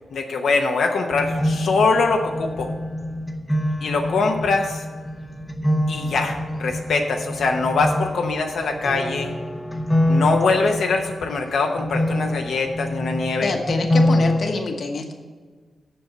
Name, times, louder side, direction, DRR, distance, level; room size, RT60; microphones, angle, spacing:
voice 1, 0.1-2.7 3.8-4.8 5.9-9.4 10.1-13.5, left 4 dB, 75° left, 3 dB, 0.8 m, -22 dB
sound 1, 1.1-14.4, left 1 dB, 10° left, 0.7 m, -25 dB
voice 2, 13.4-15.1, left 3 dB, 50° left, 4 dB, 1.0 m, -26 dB
7.8 x 6.6 x 7.7 m, 1.5 s
wide cardioid pair, 180°, 0 cm